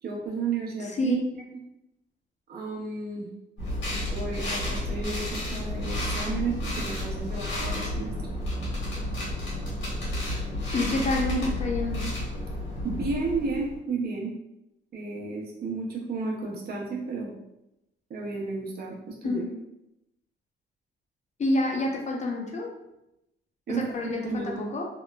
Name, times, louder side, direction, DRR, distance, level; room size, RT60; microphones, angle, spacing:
voice 1, 0.0-1.2 2.5-3.3 4.1-8.1 12.8-14.3 14.9-17.3 18.1-19.4 23.7-24.6, right 4 dB, 50° right, -2 dB, 0.7 m, -32 dB
voice 2, 0.8-1.2 10.7-12.1 19.2-19.5 21.4-22.7 23.7-24.9, left 1 dB, 35° left, 1 dB, 0.5 m, -28 dB
sound 1, 3.6-13.8, left 1 dB, 80° left, 1.3 m, -31 dB
2.9 x 2.0 x 2.2 m, 0.87 s
cardioid pair, 90°, 20 cm